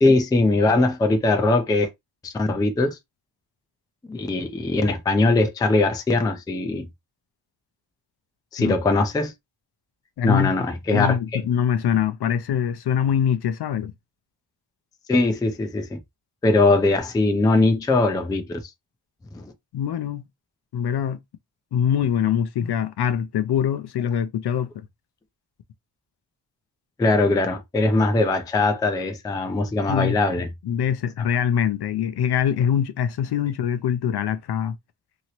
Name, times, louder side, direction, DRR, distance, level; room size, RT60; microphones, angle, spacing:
voice 1, 0.0-1.9 2.2-3.0 4.1-6.9 8.5-9.3 10.2-11.4 15.1-16.0 16.4-18.6 19.3-19.5 27.0-30.5, left 2 dB, 10° left, 0.3 m, -21 dB
voice 2, 10.2-10.5 10.9-13.9 19.7-20.3 20.7-21.2 21.7-24.8 29.9-30.2 30.6-34.8, left 9 dB, 60° left, 0.5 m, -23 dB
2.9 x 2.8 x 2.9 m
wide cardioid pair, 170°, 46 cm